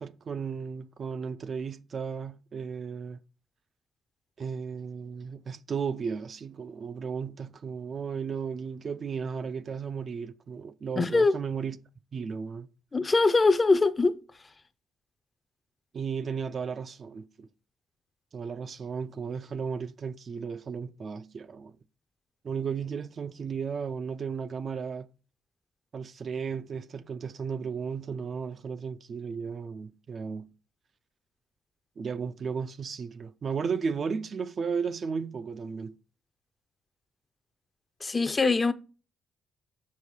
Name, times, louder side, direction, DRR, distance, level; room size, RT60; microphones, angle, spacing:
voice 1, 0.0-3.2 4.4-11.8 12.1-12.7 15.9-17.5 18.3-21.7 22.4-25.1 25.9-30.5 32.0-35.9, right 6 dB, 40° right, 0.4 m, -34 dB
voice 2, 11.0-11.4 12.9-14.1 38.0-38.7, left 3 dB, 20° left, 0.5 m, -22 dB
6.3 x 4.8 x 5.3 m
cardioid pair, 130°, 0 cm